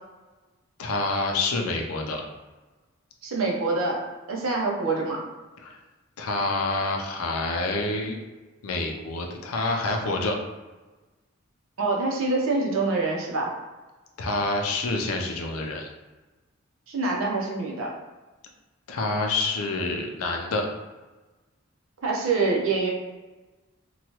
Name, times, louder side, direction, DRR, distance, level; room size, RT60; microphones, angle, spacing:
voice 1, 0.8-2.2 5.6-5.8 6.2-8.2 8.6-10.4 14.2-15.9 18.9-20.7, left 2 dB, 90° left, 2 dB, 0.5 m, -27 dB
voice 2, 3.2-4.0 4.3-5.2 11.8-13.5 16.9-17.9 22.0-22.9, right 3 dB, 75° right, -1 dB, 0.6 m, -25 dB
2.9 x 2.3 x 2.9 m, 1.2 s
head